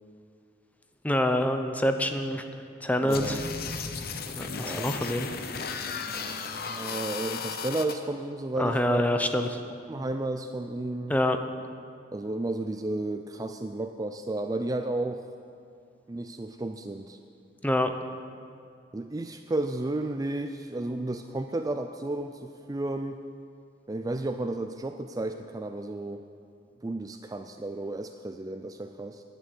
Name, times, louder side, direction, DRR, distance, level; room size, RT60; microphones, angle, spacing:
voice 1, 1.0-2.4 2.8-3.4 4.4-5.3 8.6-9.5 11.1-11.4 17.6-17.9, left 1 dB, 10° left, 7 dB, 0.7 m, -26 dB
voice 2, 3.0-3.4 4.6-4.9 6.2-9.0 9.9-11.2 12.1-15.2 16.1-17.2 18.9-23.2 23.9-26.2 26.8-29.2, right 2 dB, 20° right, 7 dB, 0.4 m, -33 dB
sound 1, 3.1-7.9, left 5 dB, 55° left, 0.8 m, -35 dB
11.0 x 9.1 x 8.2 m, 2.4 s
head